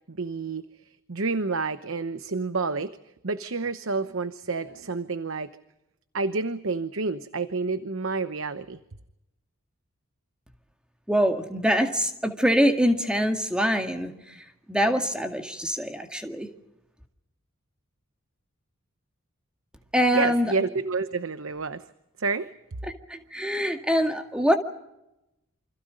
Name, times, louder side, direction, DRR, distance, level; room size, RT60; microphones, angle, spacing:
voice 1, 0.1-0.6 1.1-2.9 3.2-5.5 6.1-8.8 20.1-21.8 22.2-22.5, right 4 dB, 65° right, 12 dB, 0.9 m, -29 dB
voice 2, 11.1-14.1 14.7-16.5 19.9-20.5 23.1-24.6, equal, 5° right, 5 dB, 2.0 m, -24 dB
28.5 x 26.0 x 5.3 m, 0.89 s
head